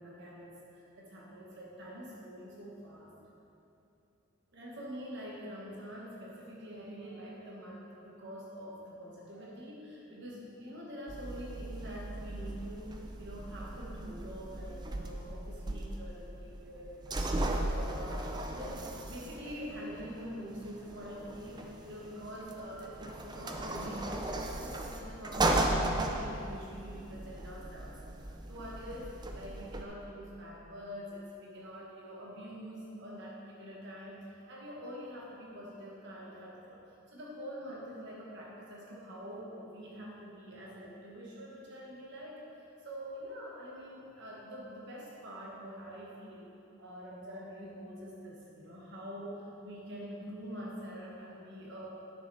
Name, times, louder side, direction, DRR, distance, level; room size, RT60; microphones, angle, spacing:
voice 1, 0.0-3.1 4.5-46.5 46.8-51.9, equal, 55° right, -4 dB, 1.3 m, -45 dB
sound 1, 11.1-29.8, right 1 dB, 20° right, 0.4 m, -37 dB
9.7 x 6.5 x 4.1 m, 2.8 s
head